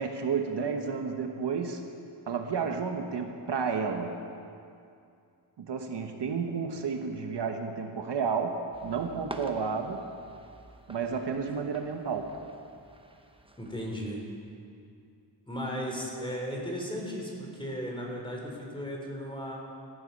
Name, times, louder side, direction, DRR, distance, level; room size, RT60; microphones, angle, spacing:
voice 1, 0.0-1.8 2.3-4.2 5.6-10.0 10.9-12.3, right 5 dB, 70° right, 4 dB, 1.2 m, -31 dB
sound 1, 8.7-14.0, right 2 dB, 10° right, 0.9 m, -48 dB
voice 2, 13.6-14.2 15.5-19.6, equal, 10° left, -1 dB, 3.4 m, -35 dB
18.0 x 14.0 x 5.3 m, 2.5 s
wide cardioid pair, 145°, 44 cm